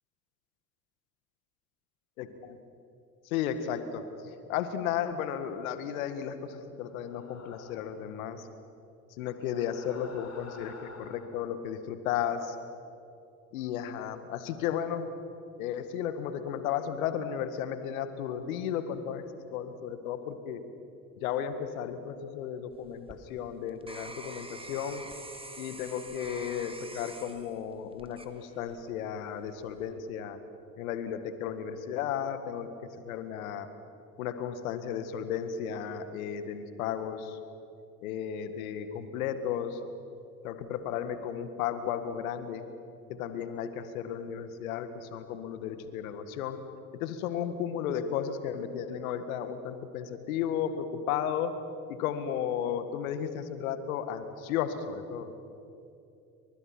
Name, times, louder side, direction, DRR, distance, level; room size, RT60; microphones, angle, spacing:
voice 1, 2.2-2.6 3.3-8.5 9.2-12.6 13.5-15.1 15.6-20.6 21.2-25.1 25.6-30.4 30.8-33.7 34.2-37.4 38.0-39.8 40.4-42.7 43.1-46.6 46.9-51.5 51.9-55.3, left 9 dB, 80° left, 10 dB, 1.8 m, -34 dB
sound 1, 6.9-8.1 9.3-11.5, left 3 dB, 40° left, 4.1 m, -50 dB
sound 2, 22.7-28.9 29.5-29.9, right 2 dB, 15° right, 2.2 m, -46 dB
29.5 x 24.5 x 6.1 m, 2.6 s
hypercardioid pair, 55°, 41 cm